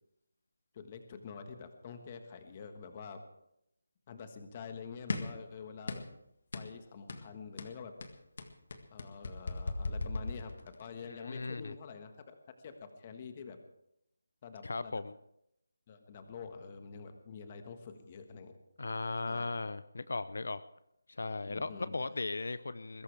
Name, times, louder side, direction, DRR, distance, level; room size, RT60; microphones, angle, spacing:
voice 1, 0.7-3.2 4.1-6.1 6.5-7.9 8.9-12.3 12.6-13.6 14.4-15.0 15.9-18.6 19.2-19.5 21.4-21.9, left 5 dB, 20° left, 7 dB, 1.4 m, -47 dB
sound 1, 5.1-5.4 5.9-6.2 6.5-6.7 7.1-7.3 7.6-10.9, left 3 dB, 45° left, 1.8 m, -38 dB
voice 2, 11.1-11.7 14.6-15.2 18.8-20.6 21.1-23.0, left 3 dB, 65° left, 14 dB, 0.6 m, -37 dB
21.0 x 17.0 x 3.4 m, 0.79 s
figure-of-eight pair, 175°, 0 cm